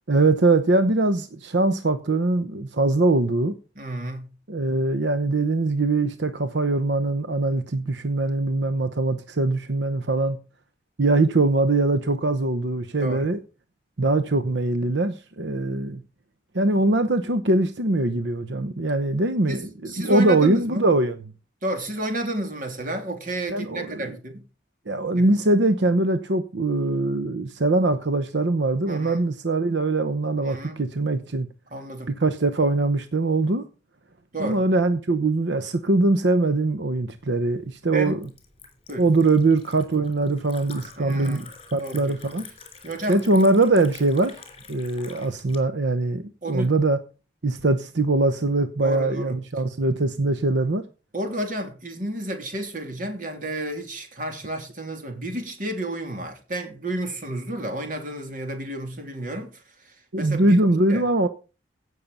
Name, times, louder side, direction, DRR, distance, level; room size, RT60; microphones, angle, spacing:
voice 1, 0.1-3.5 4.5-10.4 11.0-13.4 14.0-16.0 16.5-21.2 23.5-24.1 24.9-31.5 32.1-33.6 34.4-38.2 39.0-41.4 41.7-42.5 43.1-44.3 44.7-47.0 47.4-50.8 60.1-61.3, right 2 dB, 80° right, 0.9 m, -22 dB
voice 2, 3.7-4.3 13.0-13.3 19.5-20.9 21.6-24.4 25.1-25.2 28.9-29.2 30.4-30.8 31.7-32.1 34.3-34.6 37.9-38.2 38.9-39.0 41.0-41.5 41.8-42.2 42.8-43.5 46.4-46.7 48.8-49.4 51.1-59.5 59.8-60.6 60.9-61.0, right 1 dB, 50° right, 3.0 m, -31 dB
Liquid, 37.2-45.6, left 5 dB, 30° left, 3.4 m, -47 dB
16.0 x 6.5 x 5.5 m
head